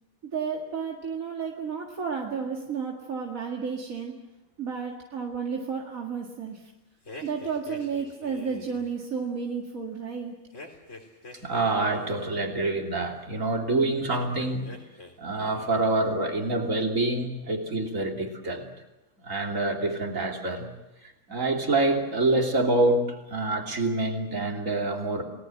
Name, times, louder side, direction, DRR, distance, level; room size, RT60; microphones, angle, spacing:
voice 1, 0.3-4.1 4.6-6.7 7.2-10.3, right 6 dB, 85° right, 0 dB, 2.6 m, -32 dB
sound 1, 7.0-8.9 10.5-12.4 14.0-15.1 15.4-15.9, left 2 dB, 65° left, 3.9 m, -45 dB
voice 2, 11.4-14.7 15.2-18.7 19.2-20.7 21.3-25.2, right 2 dB, 70° right, 2 dB, 3.6 m, -26 dB
29.5 x 19.0 x 7.8 m, 1.0 s
omnidirectional pair, 1.4 m